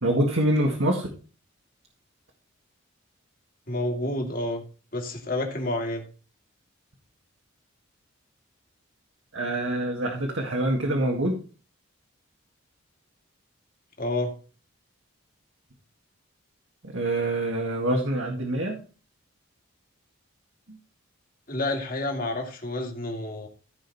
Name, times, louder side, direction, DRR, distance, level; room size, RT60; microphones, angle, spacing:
voice 1, 0.0-1.1 9.3-11.4 16.8-18.8 20.7-20.8, right 1 dB, 70° right, 1 dB, 2.0 m, -25 dB
voice 2, 3.7-4.6 4.9-6.0 14.0-14.3 21.5-23.5, left 1 dB, 45° left, 2 dB, 2.5 m, -29 dB
15.0 x 5.3 x 4.1 m, 0.36 s
head